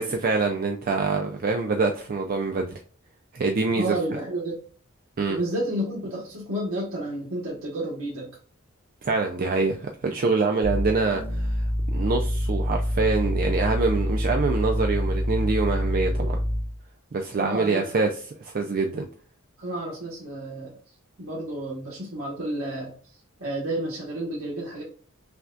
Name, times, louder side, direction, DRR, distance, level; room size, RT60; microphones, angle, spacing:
voice 1, 0.0-2.7 3.3-4.0 5.2-5.4 9.0-16.4 17.1-19.1, right 4 dB, 45° right, 3 dB, 0.4 m, -25 dB
voice 2, 3.7-4.6 5.3-8.3 17.3-17.9 19.6-20.8 21.2-22.9 23.4-24.8, right 1 dB, 75° right, -5 dB, 1.3 m, -31 dB
sound 1, 10.6-16.8, equal, 10° left, 0.6 m, -26 dB
5.7 x 2.3 x 2.5 m, 0.43 s
head